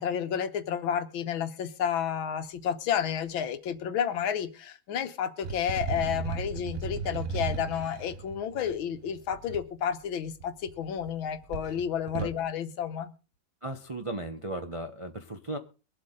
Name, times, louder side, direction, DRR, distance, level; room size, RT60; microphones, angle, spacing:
voice 1, 0.0-13.1, left 8 dB, 85° left, 11 dB, 1.8 m, -31 dB
sound 1, 5.4-9.6 10.4-11.1 11.4-12.4, right 5 dB, 55° right, 1.1 m, -36 dB
voice 2, 13.6-15.6, right 2 dB, 40° right, 6 dB, 0.4 m, -36 dB
22.5 x 8.0 x 3.8 m, 0.34 s
omnidirectional pair, 2.1 m